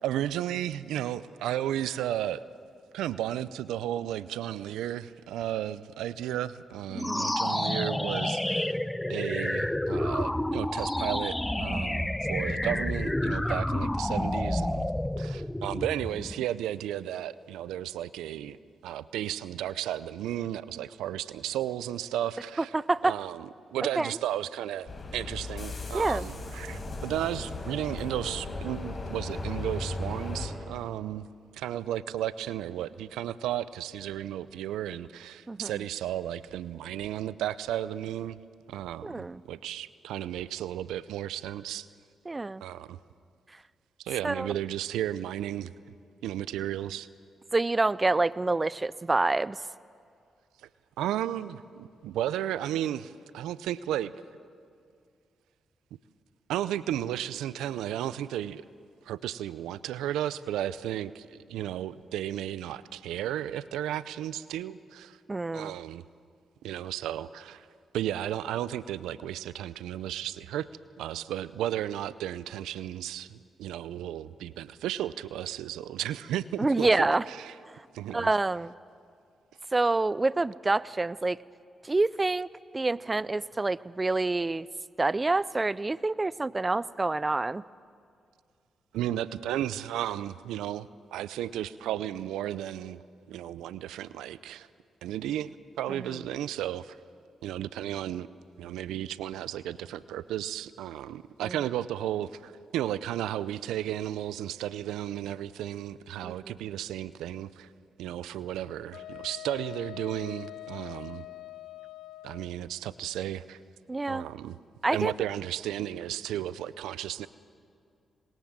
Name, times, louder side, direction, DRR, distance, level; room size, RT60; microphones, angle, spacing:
voice 1, 0.0-2.4 2.9-8.8 9.1-14.9 15.2-18.6 18.8-22.7 23.0-31.3 31.5-38.4 38.7-41.9 42.6-43.0 44.0-45.7 46.2-47.1 51.0-54.1 56.5-58.7 59.0-65.2 65.5-66.0 66.6-67.7 67.9-70.7 71.0-77.5 77.9-78.3 88.9-93.0 93.3-94.7 95.0-97.0 97.4-98.3 98.6-107.7 108.0-111.2 112.2-113.6 114.1-114.6 114.9-117.3, right 12 dB, 85° right, 17 dB, 0.6 m, -34 dB
sound 1, 6.9-16.4, left 1 dB, 10° left, 0.8 m, -29 dB
voice 2, 7.0-7.3 13.4-13.6 22.7-23.2 24.0-24.1 25.9-26.3 35.5-35.8 39.0-39.4 42.3-42.6 44.2-44.5 47.5-49.6 65.3-65.8 76.6-77.2 78.1-78.7 79.7-81.4 81.8-82.5 82.7-84.7 85.0-87.6 101.4-101.6 106.2-106.5 113.9-114.2 114.8-115.1, right 3 dB, 30° right, 20 dB, 0.5 m, -27 dB
sound 2, 24.9-30.5, left 2 dB, 45° left, 6.2 m, -36 dB
Wind instrument woodwind instrument, 108.9-112.5, left 16 dB, 80° left, 0.6 m, -44 dB
27.0 x 21.0 x 7.5 m, 2.3 s
supercardioid pair, 45°, 0 cm